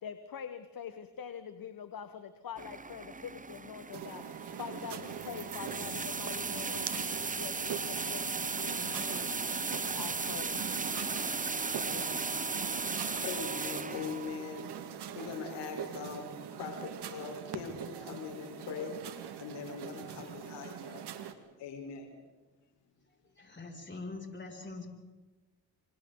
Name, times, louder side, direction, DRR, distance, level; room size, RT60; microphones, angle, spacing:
voice 1, 0.0-9.4 9.9-10.7 11.8-12.6 13.0-13.2, left 8 dB, 55° left, 10 dB, 1.5 m, -45 dB
sound 1, 2.6-14.4, right 4 dB, 20° right, 1.0 m, -36 dB
sound 2, 3.9-21.3, right 9 dB, 70° right, 2.1 m, -42 dB
voice 2, 13.2-14.7 15.1-16.3 16.6-19.0 19.4-21.1 21.6-22.1, left 6 dB, 85° left, 3 dB, 4.5 m, -41 dB
voice 3, 23.4-24.9, left 3 dB, 25° left, 2 dB, 6.9 m, -43 dB
28.5 x 25.0 x 4.0 m, 1.2 s
supercardioid pair, 50°, 41 cm